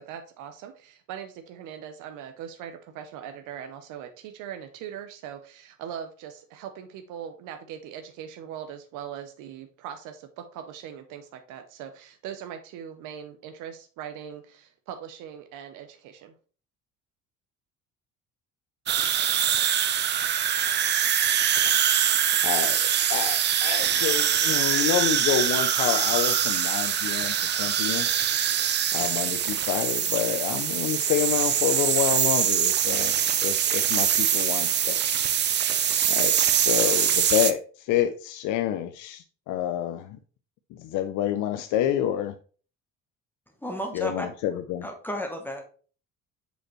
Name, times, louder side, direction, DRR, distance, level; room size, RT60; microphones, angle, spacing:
voice 1, 0.0-16.3, right 9 dB, 85° right, 0.7 m, -40 dB
sound 1, 18.9-37.5, right 9 dB, 35° right, 0.5 m, -23 dB
voice 2, 22.4-22.8 23.1-28.1 28.9-33.1 33.4-35.0 36.1-40.2 40.7-42.3 43.9-44.9, left 11 dB, 75° left, 0.5 m, -28 dB
voice 3, 43.6-44.3 44.8-45.6, equal, 5° left, 0.9 m, -32 dB
6.4 x 5.1 x 3.0 m
cardioid pair, 135°, 31 cm